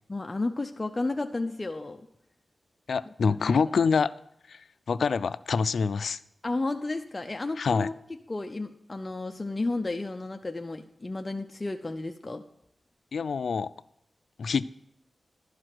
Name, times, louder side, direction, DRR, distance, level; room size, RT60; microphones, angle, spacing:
voice 1, 0.1-2.1 3.2-3.6 6.4-7.9 8.3-12.4, left 2 dB, 30° left, 5 dB, 0.6 m, -32 dB
voice 2, 2.9-4.1 4.5-6.2 7.6-7.9 13.1-13.7 14.4-14.7, left 5 dB, 75° left, 16 dB, 0.3 m, -26 dB
12.0 x 4.8 x 7.5 m, 0.75 s
cardioid pair, 70°, 0 cm